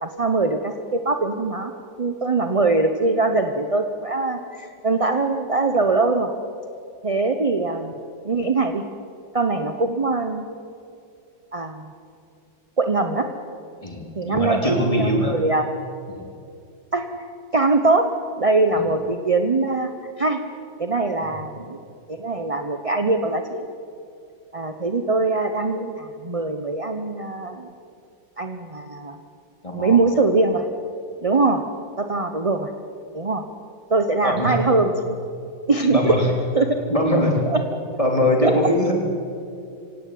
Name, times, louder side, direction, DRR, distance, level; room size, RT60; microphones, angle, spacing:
voice 1, 0.0-1.7 2.0-6.3 7.0-7.9 8.2-8.8 9.3-10.4 11.5-11.9 12.8-13.3 14.2-15.7 16.9-17.1 17.5-18.1 18.4-19.9 20.2-20.4 20.8-21.8 22.1-23.6 24.5-27.7 28.4-29.2 29.7-30.7 31.2-31.6 32.0-32.7 33.1-33.5 33.9-35.2 35.7-36.1 36.5-36.8 37.5-37.6 38.4-38.5, right 3 dB, 30° right, 6 dB, 0.6 m, -22 dB
voice 2, 13.8-15.4 16.1-16.3 18.8-18.9 29.6-30.0 34.2-34.6 35.9-36.3 36.9-37.4 38.0-38.9, left 1 dB, 15° left, 0 dB, 3.6 m, -22 dB
25.5 x 17.0 x 8.5 m, 2.5 s
omnidirectional pair, 2.0 m